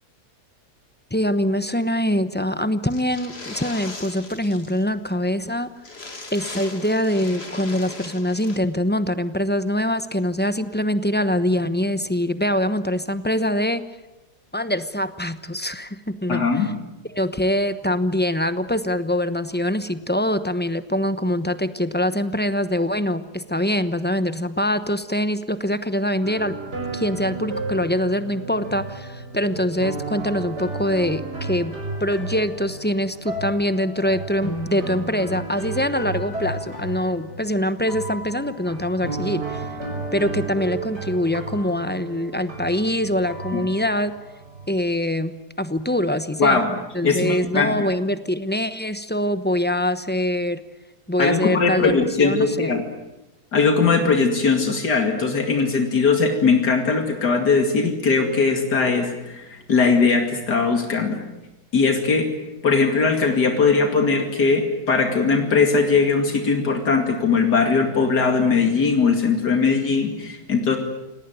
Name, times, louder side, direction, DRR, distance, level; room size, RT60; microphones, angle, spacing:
voice 1, 1.1-5.7 6.3-13.8 14.5-16.5 17.1-26.6 26.9-39.6 40.1-44.1 44.7-46.6 46.9-50.6 51.1-52.7, left 1 dB, 10° left, 12 dB, 0.7 m, -24 dB
sound 1, 2.9-4.8 5.1-5.2 5.4-5.5 5.8-8.6, left 3 dB, 40° left, 2.7 m, -38 dB
voice 2, 16.3-16.7 43.5-43.6 46.4-46.7 47.0-47.8 51.2-52.8 53.5-61.2 61.7-62.3 62.6-70.8, left 4 dB, 80° left, 4 dB, 2.9 m, -20 dB
sound 2, 26.2-44.8, right 3 dB, 80° right, 6.4 m, -33 dB
28.0 x 18.5 x 9.4 m, 1.0 s
omnidirectional pair, 1.7 m